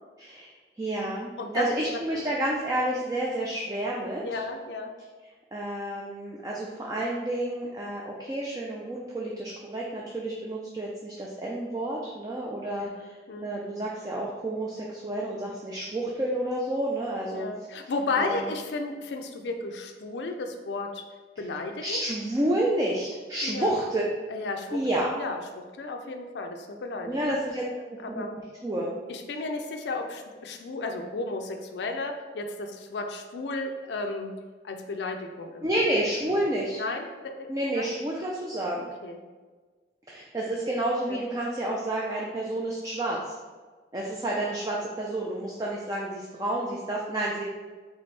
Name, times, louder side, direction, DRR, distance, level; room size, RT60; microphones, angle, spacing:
voice 1, 0.2-4.4 5.5-13.2 13.4-17.5 18.2-18.5 21.8-24.0 24.7-25.1 27.0-27.6 28.1-28.2 28.6-28.9 35.6-36.8 37.5-38.9 40.1-43.3 43.9-47.4, right 1 dB, 20° right, -3 dB, 0.4 m, -30 dB
voice 2, 4.2-4.9 12.8-12.9 13.3-13.5 17.3-21.0 21.4-22.0 23.4-23.7 24.3-27.1 28.0-28.3 29.1-34.3 34.6-35.6 36.7-37.5 37.8-37.9 39.0-39.2 41.1-41.2, left 3 dB, 80° left, 4 dB, 0.4 m, -33 dB
4.2 x 3.5 x 3.2 m, 1.4 s
head